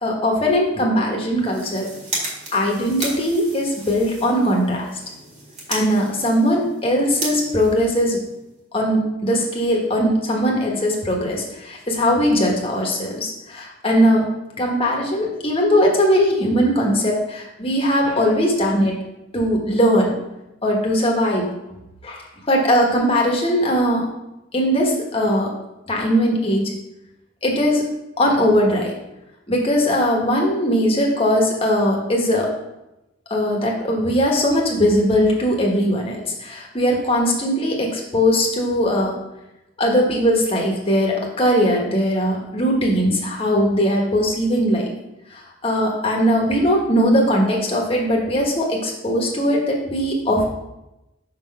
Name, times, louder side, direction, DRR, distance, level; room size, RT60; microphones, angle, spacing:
voice 1, 0.0-1.9 2.5-4.9 5.7-8.2 8.7-14.3 14.6-19.0 19.3-20.2 20.6-21.5 22.0-24.1 24.5-25.5 25.9-26.7 27.4-27.8 28.2-29.0 29.5-32.5 33.3-39.2 39.8-44.9 45.3-50.4, equal, 30° left, -1 dB, 1.3 m, -20 dB
sound 1, 1.3-8.6, right 2 dB, 35° right, 1.9 m, -34 dB
5.7 x 4.0 x 5.4 m, 0.93 s
head